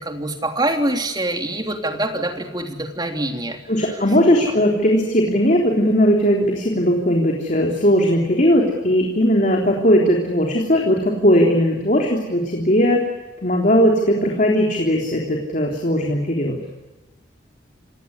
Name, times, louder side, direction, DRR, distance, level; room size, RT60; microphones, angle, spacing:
voice 1, 0.0-3.6 4.3-4.4, right 1 dB, 20° right, 4 dB, 3.2 m, -25 dB
voice 2, 3.7-13.1 13.4-16.6, equal, 40° left, 0 dB, 3.6 m, -18 dB
28.0 x 18.0 x 9.8 m, 1.1 s
head